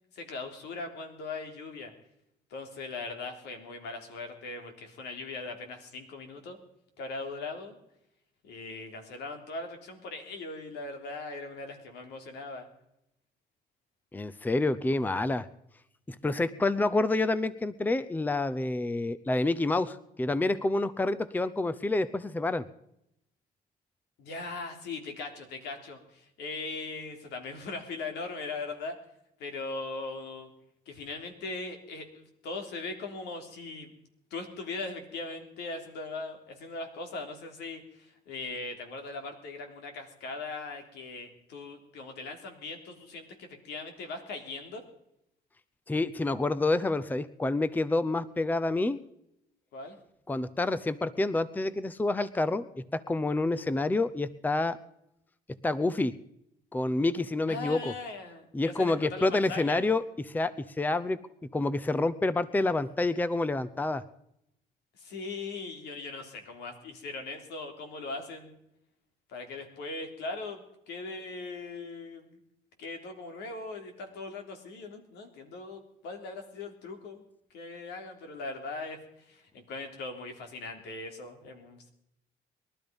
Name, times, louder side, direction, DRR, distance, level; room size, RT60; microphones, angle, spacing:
voice 1, 0.1-1.9 2.5-6.6 7.0-7.8 8.4-12.7 24.2-29.0 29.4-30.5 30.9-33.9 34.3-44.8 49.7-50.0 57.5-59.8 65.0-68.6 69.3-72.4 72.8-77.2 77.5-79.0 79.3-81.9, left 3 dB, 80° left, 5 dB, 3.5 m, -40 dB
voice 2, 14.1-15.5 16.1-22.6 45.9-49.0 50.3-52.7 52.9-54.8 55.6-56.1 56.7-57.9 58.5-61.2 61.5-64.0, left 2 dB, 10° left, 15 dB, 0.7 m, -28 dB
21.5 x 12.5 x 5.3 m, 0.78 s
cardioid pair, 110°, 17 cm